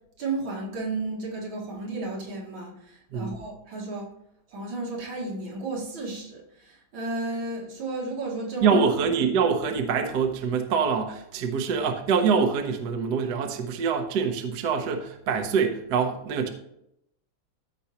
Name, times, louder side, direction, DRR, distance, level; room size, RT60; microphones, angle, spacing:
voice 1, 0.2-4.1 4.5-8.7, right 2 dB, 85° right, 2.7 m, -33 dB
voice 2, 8.6-16.5, right 6 dB, 60° right, 1.3 m, -25 dB
14.0 x 5.3 x 2.9 m
omnidirectional pair, 2.2 m